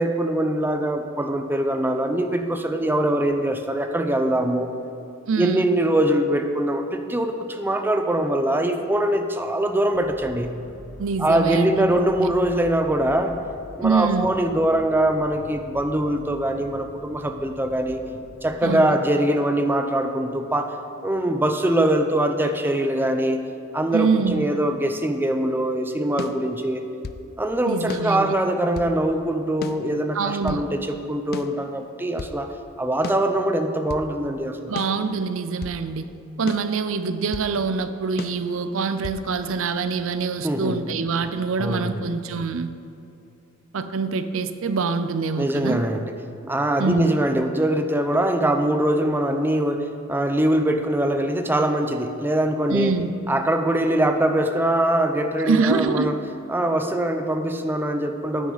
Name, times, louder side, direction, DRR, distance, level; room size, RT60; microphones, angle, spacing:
voice 1, 0.0-4.7 5.4-10.5 11.2-13.4 13.8-18.0 18.4-20.7 21.0-23.4 23.7-26.9 27.4-32.5 32.8-34.7 40.4-40.8 41.6-42.0 45.4-46.1 46.4-53.0 53.3-56.2 56.5-58.5, right 1 dB, 10° right, 6 dB, 0.6 m, -23 dB
voice 2, 5.3-5.7 11.0-12.3 13.8-14.3 18.6-19.0 23.9-24.5 27.6-28.4 30.1-30.6 34.7-36.1 36.4-42.7 43.7-45.8 46.8-47.1 52.7-53.1 55.4-56.3, right 4 dB, 65° right, 11 dB, 0.5 m, -25 dB
sound 1, 9.9-18.6, left 1 dB, 75° left, 1.1 m, -45 dB
sound 2, 26.2-27.3 27.9-29.0 29.6-30.7 31.3-32.4 33.0-34.1 34.8-35.8 36.5-37.5 38.2-39.2, left 4 dB, 50° left, 0.4 m, -36 dB
14.5 x 9.5 x 4.0 m, 2.8 s
head